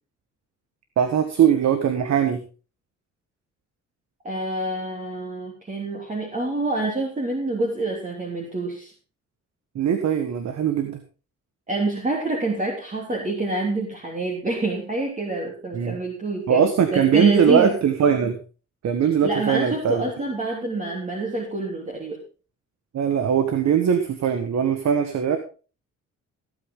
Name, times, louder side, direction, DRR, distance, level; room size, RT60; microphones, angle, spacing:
voice 1, 1.0-2.4 9.7-11.0 15.7-16.0 16.5-18.4 18.8-20.0 22.9-25.4, right 8 dB, 60° right, 8 dB, 1.6 m, -20 dB
voice 2, 4.2-8.9 11.7-16.6 16.9-17.7 19.2-22.2, right 2 dB, 25° right, -1 dB, 3.2 m, -27 dB
16.5 x 8.7 x 3.8 m, 0.35 s
cardioid pair, 90°, 30 cm